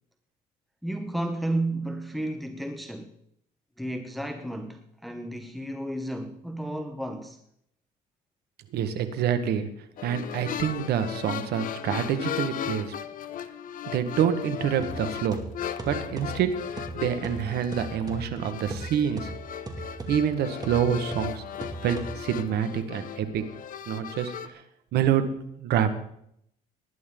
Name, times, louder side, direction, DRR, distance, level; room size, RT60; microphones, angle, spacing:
voice 1, 0.8-3.1 3.8-7.4, right 1 dB, ahead, 1.0 m, -32 dB
voice 2, 8.7-9.7 10.0-12.9 13.9-15.4 15.9-16.5 16.7-19.3 20.1-21.4 21.8-23.4 23.9-24.6 24.9-25.3 25.6-25.9, right 9 dB, 75° right, 1.5 m, -27 dB
sound 1, 10.0-24.5, left 9 dB, 55° left, 0.9 m, -37 dB
sound 2, 14.8-22.5, right 3 dB, 20° right, 2.3 m, -40 dB
19.0 x 11.0 x 3.8 m
cardioid pair, 110°, 17 cm